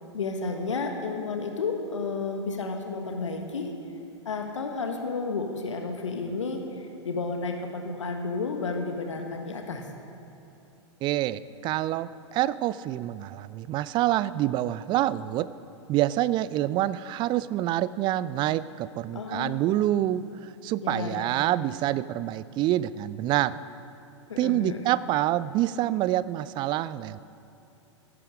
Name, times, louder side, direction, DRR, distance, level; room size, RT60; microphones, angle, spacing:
voice 1, 0.1-3.7 4.2-9.9 19.1-19.7 20.8-21.5 24.3-24.8, left 4 dB, 75° left, 4 dB, 1.3 m, -32 dB
voice 2, 11.0-15.5 15.9-23.6 24.4-27.2, right 14 dB, 30° right, 18 dB, 0.4 m, -27 dB
15.0 x 11.0 x 5.0 m, 2.9 s
figure-of-eight pair, 100°, 16 cm